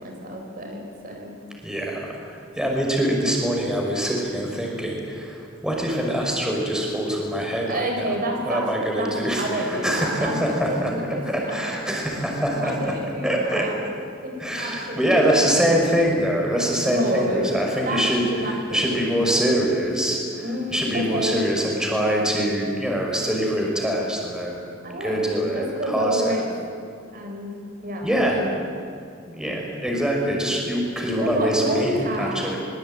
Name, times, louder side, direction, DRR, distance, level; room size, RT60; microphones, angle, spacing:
voice 1, 0.0-1.4 7.7-8.7 9.0-11.6 12.5-13.7 14.2-15.8 16.8-17.6 17.8-19.0 20.4-21.4 24.8-25.3 25.5-26.5 27.1-28.5 31.1-32.5, equal, 50° right, 2 dB, 4.4 m, -29 dB
voice 2, 1.6-7.8 8.5-13.7 14.4-24.7 25.0-26.4 28.0-28.4 29.3-32.6, equal, 5° right, -1 dB, 5.5 m, -24 dB
24.0 x 23.0 x 9.1 m, 2.3 s
head